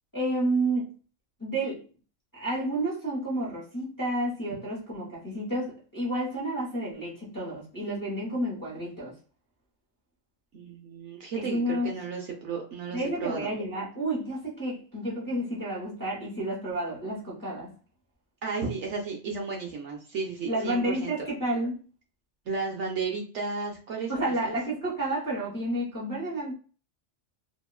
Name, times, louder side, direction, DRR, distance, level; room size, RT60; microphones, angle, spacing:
voice 1, 0.1-0.9 1.4-1.9 2.3-9.1 11.4-11.9 12.9-17.7 20.4-21.8 24.1-26.5, right 1 dB, 15° left, 0.9 m, -30 dB
voice 2, 10.5-13.5 18.4-21.1 22.5-24.5, right 4 dB, 65° right, 0.8 m, -33 dB
2.9 x 2.2 x 2.3 m
omnidirectional pair, 1.4 m